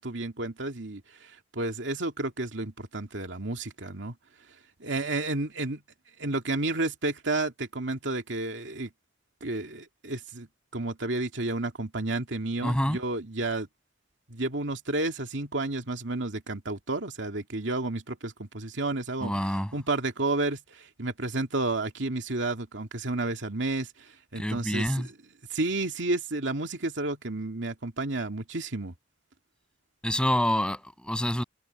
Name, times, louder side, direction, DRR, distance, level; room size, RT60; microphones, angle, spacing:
voice 1, 0.0-4.1 4.8-5.8 6.2-8.9 9.4-10.5 10.7-13.7 14.3-25.1 25.5-28.9, right 2 dB, 75° right, 2.4 m, -31 dB
voice 2, 12.6-13.0 19.2-19.7 24.4-25.1 30.0-31.4, equal, 5° left, 7.3 m, -27 dB
head